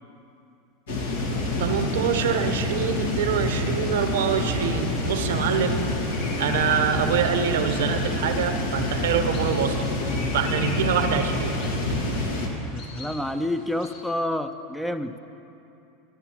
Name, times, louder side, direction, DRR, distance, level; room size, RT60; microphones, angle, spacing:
sound 1, 0.9-12.5, left 2 dB, 75° left, 1.4 m, -27 dB
voice 1, 1.6-5.8 6.4-9.9 10.3-11.6, right 7 dB, 75° right, 8 dB, 0.7 m, -25 dB
sound 2, 4.9-14.0, left 2 dB, 60° left, 2.1 m, -44 dB
voice 2, 12.7-15.2, left 1 dB, ahead, 9 dB, 0.4 m, -29 dB
14.5 x 9.8 x 2.9 m, 2.8 s
hypercardioid pair, 90°, 0 cm